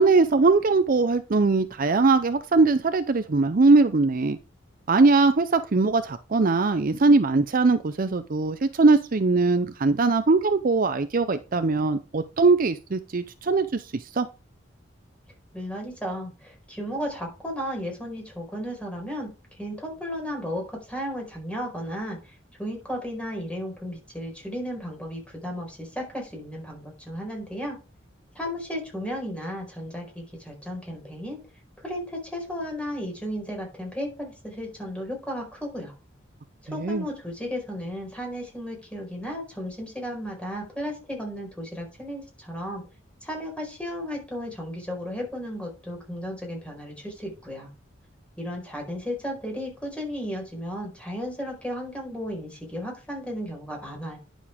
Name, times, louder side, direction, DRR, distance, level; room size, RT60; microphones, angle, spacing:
voice 1, 0.0-4.4 4.9-14.3 36.7-37.0, right 3 dB, 50° right, 11 dB, 0.6 m, -21 dB
voice 2, 15.5-27.8 28.3-31.4 31.8-35.9 36.6-42.8 43.2-47.7 48.4-54.2, equal, 5° left, 0 dB, 4.7 m, -34 dB
10.5 x 7.1 x 3.5 m, 0.30 s
head